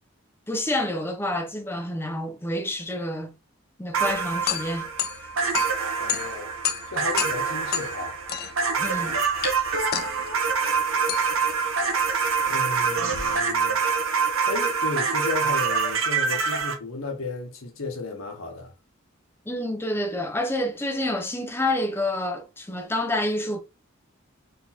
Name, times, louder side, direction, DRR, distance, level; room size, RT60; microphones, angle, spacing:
voice 1, 0.5-3.3 3.8-4.9 8.8-9.2 19.5-23.6, left 1 dB, 10° left, 0.7 m, -28 dB
sound 1, 3.9-16.7, right 5 dB, 80° right, 0.9 m, -25 dB
sound 2, 4.0-13.1, left 10 dB, 50° left, 0.3 m, -33 dB
voice 2, 6.0-6.5 6.9-8.2 12.5-13.8 14.5-18.7, left 3 dB, 80° left, 1.0 m, -34 dB
3.9 x 3.4 x 2.9 m
head